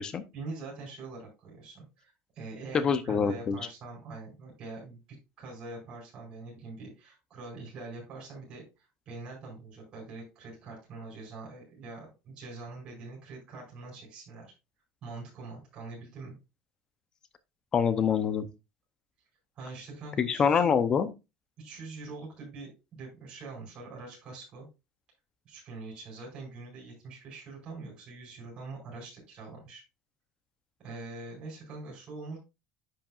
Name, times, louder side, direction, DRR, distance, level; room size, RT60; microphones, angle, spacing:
voice 1, 0.3-5.0 5.4-14.5 15.0-16.4 19.6-20.6 21.6-24.7 25.4-29.8 30.8-32.4, right 3 dB, 35° right, -3 dB, 5.4 m, -44 dB
voice 2, 2.7-3.6 17.7-18.5 20.2-21.1, left 6 dB, 25° left, 12 dB, 0.7 m, -25 dB
10.5 x 5.8 x 2.5 m, 0.26 s
cardioid pair, 165°, 3 cm